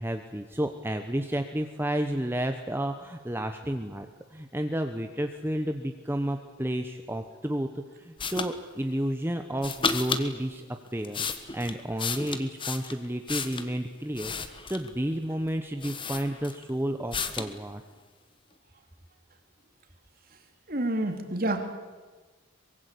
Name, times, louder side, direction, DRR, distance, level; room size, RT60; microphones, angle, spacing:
voice 1, 0.0-4.1 4.3-10.6 10.9-11.3 11.5-17.8, right 1 dB, 10° right, 6 dB, 1.0 m, -31 dB
sound 1, 8.2-8.5 9.6-10.3 10.9-13.7 14.1-14.9 15.5-15.6 15.8-16.7 17.1-17.5, left 5 dB, 25° left, 1.4 m, -32 dB
voice 2, 20.7-21.7, right 1 dB, 45° right, 5 dB, 3.1 m, -28 dB
24.0 x 22.0 x 8.5 m, 1.4 s
head